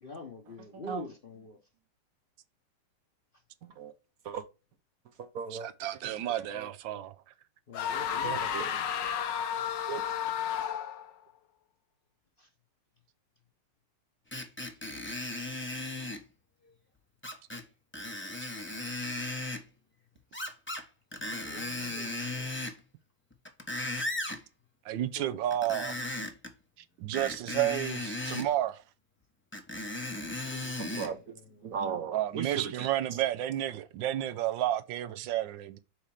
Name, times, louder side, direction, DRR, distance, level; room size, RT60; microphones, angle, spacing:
voice 1, 0.0-1.6 7.7-8.4 12.4-12.5 16.6-16.8 21.1-22.4 24.9-25.4 30.5-31.7, left 2 dB, 40° left, 0.8 m, -46 dB
voice 2, 0.7-1.0 3.6-3.9 4.2-4.4 5.2-5.7 6.0-6.7 8.2-8.7 9.9-10.0 30.8-31.3 31.6-32.9, right 6 dB, 60° right, 1.0 m, -37 dB
voice 3, 5.5-7.1 24.8-25.9 27.0-28.8 32.1-35.8, right 12 dB, 85° right, 1.4 m, -31 dB
sound 1, 7.7-11.1, left 8 dB, 75° left, 1.5 m, -32 dB
Screech, 14.3-16.2 17.2-17.6 17.9-19.6 20.3-20.8 21.1-22.8 23.3-24.4 25.5-26.5 27.1-28.5 29.5-31.1 31.7-31.8, left 2 dB, 15° left, 0.5 m, -36 dB
6.5 x 4.3 x 4.8 m
omnidirectional pair, 2.0 m